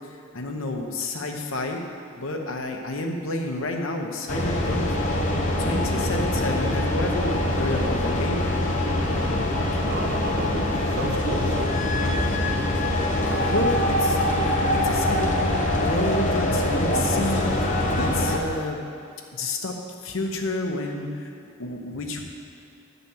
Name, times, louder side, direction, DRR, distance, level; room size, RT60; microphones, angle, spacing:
voice 1, 0.3-1.8 2.2-4.9 5.6-8.4 9.7-9.8 13.2-18.8 19.3-19.8 20.0-21.3 21.6-22.2, left 2 dB, 90° left, 2 dB, 1.0 m, -30 dB
sound 1, 4.3-18.4, left 1 dB, 40° left, 0.9 m, -24 dB
voice 2, 9.8-10.7 10.9-12.6, right 1 dB, 55° right, 3 dB, 0.8 m, -34 dB
10.5 x 4.0 x 7.1 m, 2.4 s
head